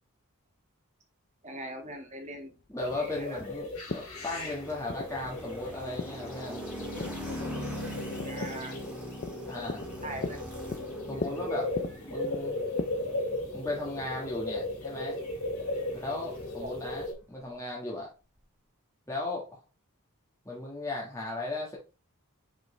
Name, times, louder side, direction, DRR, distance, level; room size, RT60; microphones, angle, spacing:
voice 1, 1.4-2.5 2.9-3.4 8.3-8.8 10.0-10.4 15.7-15.9 16.6-16.7, right 1 dB, 35° right, 2 dB, 2.0 m, -41 dB
sound 1, 1.8-12.9, left 3 dB, 45° left, 0.5 m, -41 dB
voice 2, 2.7-6.9 9.5-9.9 11.1-11.7 12.1-12.6 13.5-15.2 15.9-18.1 19.1-19.6 20.4-21.8, left 2 dB, 15° left, -4 dB, 1.6 m, -36 dB
sound 2, 2.8-17.1, left 2 dB, 80° left, 3.2 m, -37 dB
sound 3, 4.0-17.1, equal, 5° right, 1.6 m, -43 dB
5.9 x 5.1 x 3.3 m, 0.31 s
head